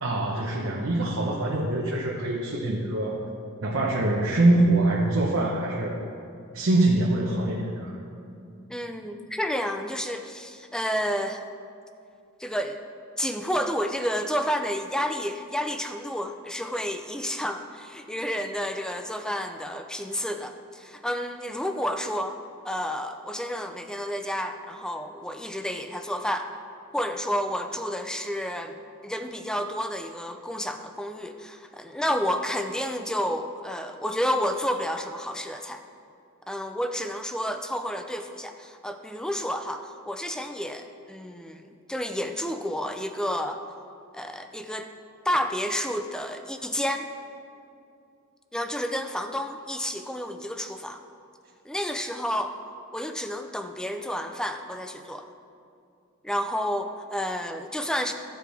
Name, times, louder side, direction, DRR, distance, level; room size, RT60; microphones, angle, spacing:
voice 1, 0.0-3.2 3.6-6.0 6.5-8.0, right 2 dB, 70° right, -3 dB, 1.0 m, -24 dB
voice 2, 8.7-11.4 12.4-12.8 13.2-22.4 22.6-26.5 26.9-28.7 29.0-35.8 36.5-41.6 41.9-43.6 44.1-44.9 45.2-47.1 48.5-51.0 51.6-52.6 52.9-55.3 56.2-58.1, equal, 5° left, 7 dB, 0.4 m, -30 dB
14.0 x 7.6 x 3.4 m, 2.5 s
head